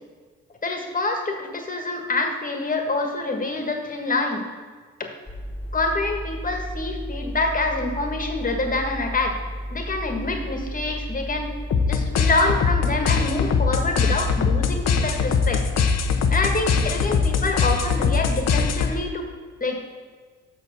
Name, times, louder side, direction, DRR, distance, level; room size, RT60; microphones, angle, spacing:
voice 1, 0.6-4.5 5.7-9.4 9.7-11.5 11.9-15.7 16.3-19.3 19.6-19.8, left 2 dB, 25° left, 4 dB, 1.5 m, -26 dB
sound 1, 5.3-19.0, equal, 5° left, 1.2 m, -33 dB
sound 2, 11.7-19.2, left 5 dB, 60° left, 0.8 m, -22 dB
6.8 x 6.2 x 6.7 m, 1.5 s
cardioid pair, 90°, 30 cm